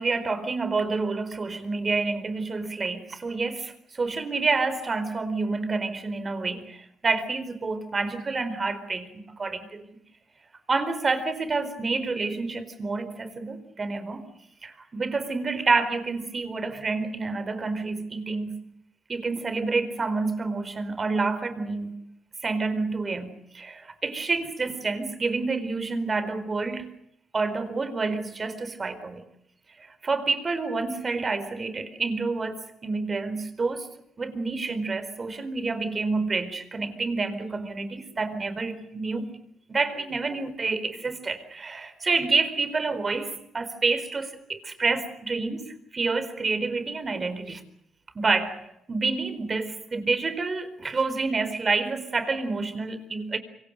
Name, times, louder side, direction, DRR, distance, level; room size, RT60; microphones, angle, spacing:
voice 1, 0.0-9.1 9.4-9.8 10.7-14.2 14.6-18.6 19.1-22.0 22.4-26.9 27.3-29.2 29.8-33.9 34.2-39.3 39.7-47.6 48.1-53.4, right 3 dB, 35° right, 12 dB, 4.4 m, -28 dB
26.0 x 24.5 x 6.6 m, 0.76 s
cardioid pair, 90°, 0 cm